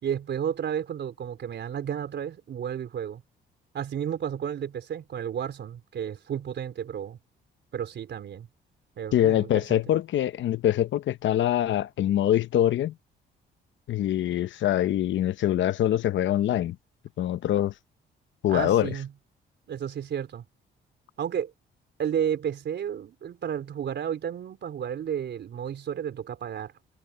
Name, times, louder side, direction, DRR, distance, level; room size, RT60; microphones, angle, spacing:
voice 1, 0.0-3.2 3.7-7.2 7.7-8.5 9.0-9.8 18.5-19.1 19.7-20.5 21.2-21.5 22.0-26.7, right 9 dB, 60° right, 4.3 m, -32 dB
voice 2, 9.1-12.9 13.9-16.8 17.2-17.7 18.4-19.0, left 12 dB, 70° left, 0.9 m, -24 dB
cardioid pair, 90°, 20 cm